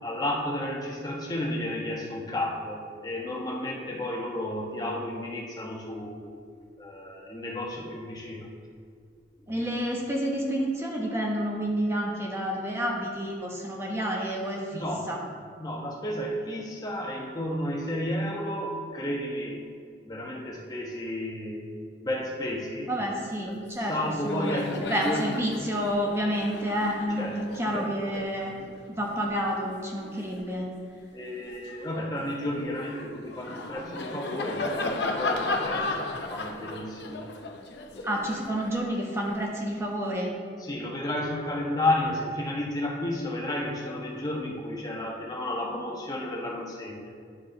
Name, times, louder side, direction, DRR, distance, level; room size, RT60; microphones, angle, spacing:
voice 1, 0.0-6.3 6.8-8.5 9.6-9.7 14.7-15.1 15.6-19.6 20.0-21.7 22.0-22.9 23.5-23.6 23.9-25.4 27.2-27.4 27.7-27.9 28.1-28.2 31.1-37.3 37.9-38.3 40.6-47.1, left 1 dB, 20° left, -2 dB, 1.1 m, -32 dB
voice 2, 9.5-15.2 22.9-24.0 24.2-27.3 27.6-28.5 28.9-30.7 38.0-40.3, equal, 15° right, -2 dB, 1.0 m, -29 dB
Laughter, 23.5-23.7 24.0-30.7 31.2-39.4, left 2 dB, 70° left, 0.6 m, -36 dB
10.0 x 4.7 x 3.8 m, 2.1 s
head